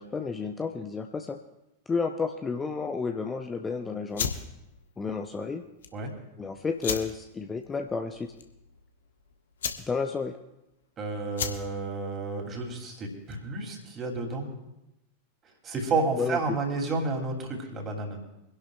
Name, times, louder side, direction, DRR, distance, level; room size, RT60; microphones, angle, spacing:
voice 1, 0.0-1.4 1.9-4.3 5.0-5.6 6.4-8.3 9.9-10.4 16.1-16.4, left 4 dB, 15° left, 5 dB, 0.6 m, -31 dB
sound 1, 4.1-13.6, left 7 dB, 65° left, 1.1 m, -38 dB
voice 2, 11.0-14.5 15.6-18.2, right 3 dB, 25° right, 2 dB, 2.9 m, -31 dB
25.0 x 11.0 x 2.4 m, 0.92 s
figure-of-eight pair, 90°, 0 cm